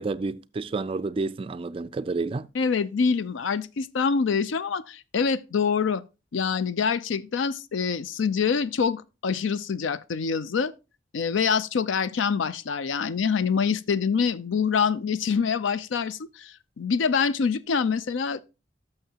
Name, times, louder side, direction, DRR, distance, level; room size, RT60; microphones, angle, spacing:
voice 1, 0.0-2.5, right 3 dB, 30° right, 0.3 m, -30 dB
voice 2, 2.5-6.0 6.3-10.7 11.1-18.4, left 6 dB, 80° left, 0.5 m, -25 dB
11.5 x 6.7 x 2.8 m
head